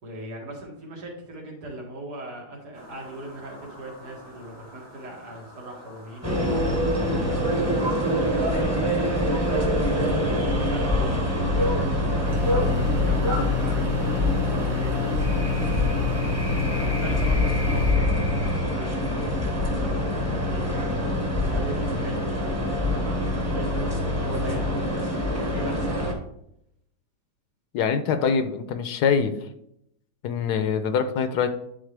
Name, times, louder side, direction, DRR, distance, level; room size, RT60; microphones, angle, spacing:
voice 1, 0.0-11.1 11.6-15.9 16.3-24.9 25.2-26.1, right 1 dB, 75° right, -1 dB, 2.3 m, -40 dB
sound 1, 2.7-16.2, equal, 90° right, 2.4 m, -36 dB
sound 2, 6.2-26.1, left 1 dB, 10° right, 1.1 m, -25 dB
sound 3, 12.3-18.0, left 6 dB, 40° right, 1.8 m, -29 dB
voice 2, 27.7-29.3 30.2-31.5, left 6 dB, 75° left, 9 dB, 1.2 m, -24 dB
10.0 x 4.3 x 3.3 m, 0.76 s
omnidirectional pair, 1.8 m